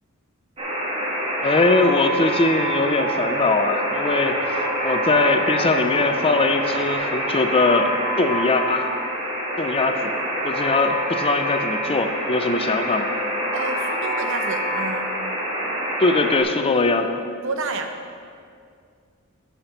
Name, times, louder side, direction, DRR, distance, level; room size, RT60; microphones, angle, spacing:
Alarm, 0.6-16.4, equal, 30° right, 1.6 m, -26 dB
voice 1, 1.4-8.9 9.6-10.1 10.4-13.1 16.0-17.1, left 3 dB, 25° left, 7 dB, 0.5 m, -21 dB
sound 1, 1.6-6.9, right 4 dB, 85° right, 0.9 m, -32 dB
voice 2, 13.5-15.1 17.4-17.9, right 3 dB, 65° right, 5 dB, 0.8 m, -29 dB
11.5 x 5.8 x 5.2 m, 2.2 s
head